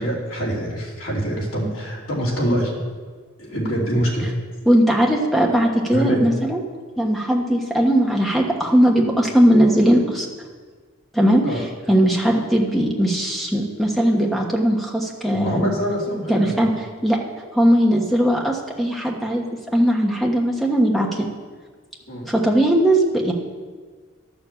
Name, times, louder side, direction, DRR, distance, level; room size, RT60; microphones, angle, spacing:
voice 1, 0.0-2.7 3.4-4.3 5.9-6.3 11.4-11.6 15.3-16.7 22.1-22.3, equal, 70° left, -4 dB, 3.1 m, -24 dB
voice 2, 4.7-6.6 7.0-10.3 11.1-15.7 16.3-16.7 17.0-17.2 17.5-19.4 19.7-21.3 22.3-23.3, equal, ahead, -1 dB, 1.2 m, -19 dB
11.5 x 6.9 x 7.3 m, 1.5 s
head